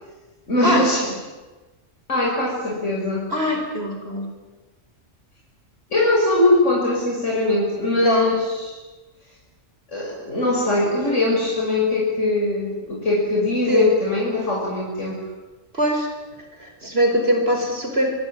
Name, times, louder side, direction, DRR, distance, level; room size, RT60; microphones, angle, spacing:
voice 1, 0.5-1.1 2.1-3.3 5.9-8.8 9.9-15.2, left 2 dB, 70° left, -3 dB, 6.3 m, -21 dB
voice 2, 3.3-4.3 7.9-8.3 13.7-13.9 15.7-16.1 16.6-18.2, equal, 50° right, 3 dB, 4.8 m, -22 dB
26.0 x 25.0 x 8.9 m, 1.2 s
omnidirectional pair, 1.3 m